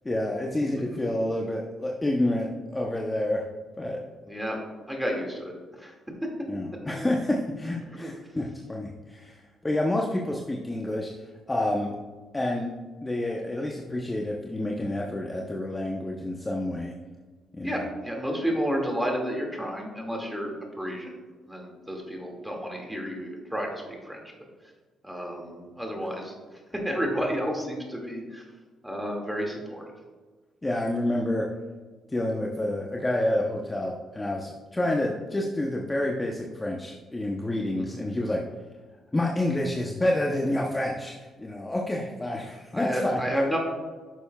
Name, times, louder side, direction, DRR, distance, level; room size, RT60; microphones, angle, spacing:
voice 1, 0.0-3.4 3.8-4.0 6.5-11.1 11.5-11.9 12.3-12.7 13.0-16.9 17.5-17.8 30.6-31.5 32.1-38.4 39.1-43.2, left 1 dB, 15° left, -1 dB, 0.8 m, -28 dB
voice 2, 4.2-4.6 4.9-5.9 8.0-8.1 17.6-21.2 21.5-23.7 24.0-24.2 25.0-26.3 26.7-28.4 28.8-29.8 37.8-38.0 42.7-43.6, equal, 5° right, 0 dB, 2.0 m, -31 dB
10.0 x 6.8 x 2.3 m, 1.4 s
cardioid pair, 90°, 0 cm